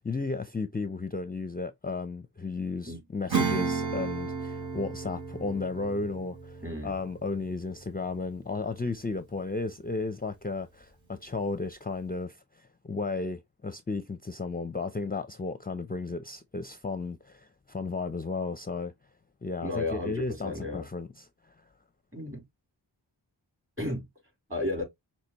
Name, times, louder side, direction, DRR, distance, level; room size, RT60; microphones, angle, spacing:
voice 1, 0.0-18.9 19.4-21.5, left 3 dB, 20° left, 0.5 m, -34 dB
Acoustic guitar / Strum, 3.3-9.3, right 5 dB, 75° right, 2.0 m, -34 dB
voice 2, 6.6-6.9 19.6-20.9 22.1-22.4 23.8-24.1 24.5-24.8, left 2 dB, 30° right, 4.1 m, -33 dB
5.9 x 3.0 x 2.9 m
wide cardioid pair, 45°, 46 cm